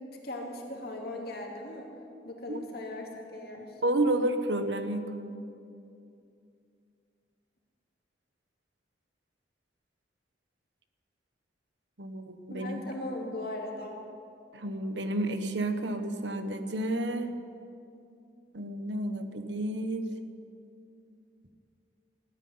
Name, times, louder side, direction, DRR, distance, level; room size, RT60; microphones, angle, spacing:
voice 1, 0.2-1.9 2.2-3.7 12.5-14.0, left 1 dB, 60° left, 1 dB, 2.5 m, -38 dB
voice 2, 3.8-5.1 12.0-12.8 14.5-17.3 18.5-20.1, right 1 dB, 85° right, 8 dB, 1.2 m, -30 dB
16.0 x 9.4 x 9.5 m, 2.6 s
head